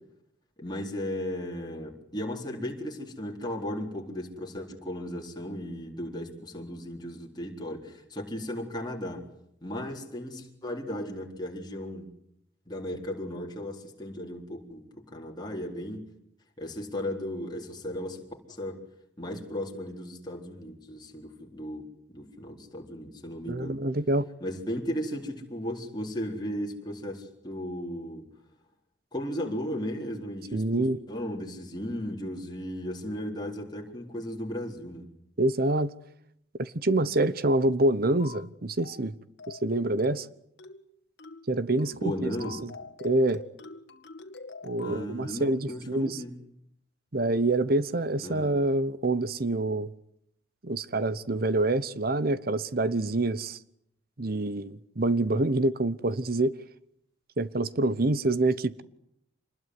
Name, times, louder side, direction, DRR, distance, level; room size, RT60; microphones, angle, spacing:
voice 1, 0.6-9.2 9.6-12.1 12.7-16.1 16.6-18.8 19.2-23.8 24.4-28.2 29.1-35.1 41.9-42.6 44.8-46.4 48.2-48.5, equal, 20° left, 4.1 m, -36 dB
voice 2, 23.5-24.2 30.5-31.0 35.4-35.9 36.6-39.1 39.5-40.3 41.5-42.3 42.6-42.7 43.0-43.4 44.6-46.2 47.1-49.9 50.6-53.6 54.2-56.5 57.4-58.8, right 2 dB, 50° right, 1.0 m, -26 dB
sound 1, 38.2-38.5 38.8-39.1 39.4-39.7 40.0-40.3 40.6-40.9 41.2-41.5 41.8-42.0 42.4-45.0, left 4 dB, 60° left, 2.0 m, -45 dB
26.5 x 20.5 x 9.6 m
head